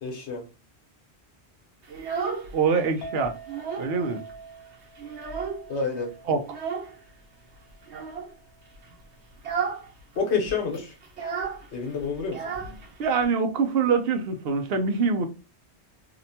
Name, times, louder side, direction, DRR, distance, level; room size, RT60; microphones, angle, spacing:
voice 1, 0.0-0.5 5.7-6.1 10.1-11.0 11.7-12.4, left 5 dB, 80° left, 1.2 m, -28 dB
Child speech kid speaking, 1.8-2.9 3.2-4.0 4.3-4.4 4.7-5.8 6.5-7.0 7.8-8.3 8.7-8.9 9.3-9.9 10.1-10.2 10.5-13.3, right 5 dB, 85° right, 1.1 m, -33 dB
voice 2, 2.5-3.3 3.8-4.2 6.3-6.4 13.0-15.3, right 5 dB, 65° right, 0.8 m, -24 dB
Chink clink, 3.0-9.3, right 2 dB, 65° left, 1.1 m, -46 dB
2.8 x 2.1 x 2.6 m
omnidirectional pair, 1.1 m